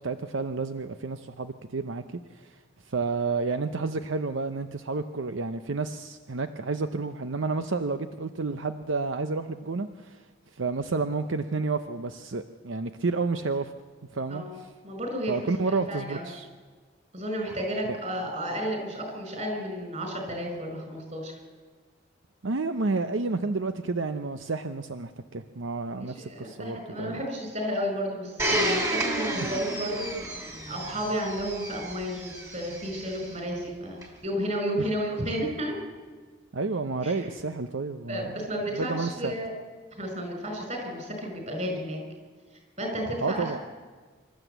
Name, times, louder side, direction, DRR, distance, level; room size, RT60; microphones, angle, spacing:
voice 1, 0.0-2.6 2.9-10.2 10.5-13.7 14.1-14.4 15.3-16.5 17.9-18.0 22.4-27.2 29.4-29.5 34.8-34.9 36.5-38.3 38.8-39.3 43.2-43.6, right 3 dB, 75° right, 9 dB, 0.7 m, -30 dB
voice 2, 14.3-15.3 15.6-16.3 17.1-21.4 25.9-35.7 37.0-37.1 38.1-39.5 40.0-42.0 42.8-43.6, equal, 35° right, 3 dB, 5.4 m, -32 dB
Domestic sounds home sounds, 28.4-33.2 34.0-34.1, right 1 dB, 15° right, 2.6 m, -31 dB
26.5 x 13.0 x 8.0 m, 1.5 s
head